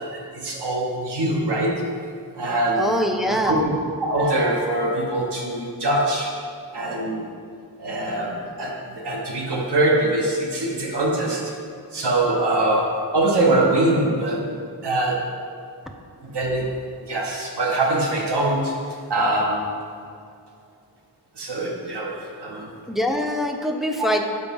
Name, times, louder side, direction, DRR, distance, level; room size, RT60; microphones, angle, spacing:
voice 1, 0.0-2.0 2.4-2.9 3.3-3.6 4.0-6.4 6.7-7.3 7.8-11.5 11.9-14.5 14.8-15.3 16.2-18.8 19.1-19.8 21.4-22.7 24.0-24.1, right 1 dB, 90° right, -1 dB, 1.3 m, -23 dB
voice 2, 2.8-3.6 22.9-24.2, equal, ahead, 3 dB, 0.6 m, -23 dB
6.8 x 4.9 x 5.3 m, 2.3 s
wide cardioid pair, 90°, 39 cm